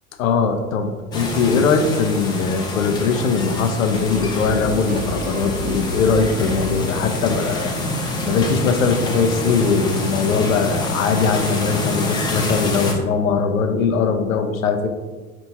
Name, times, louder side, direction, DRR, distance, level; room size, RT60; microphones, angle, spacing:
voice 1, 0.2-7.7 8.3-14.9, left 5 dB, 70° left, 6 dB, 0.6 m, -20 dB
sound 1, 1.1-12.9, left 2 dB, 10° left, 0.4 m, -26 dB
sound 2, 3.9-9.9, right 1 dB, 20° right, 0.7 m, -33 dB
4.4 x 3.4 x 2.8 m, 1.4 s
figure-of-eight pair, 85°, 43 cm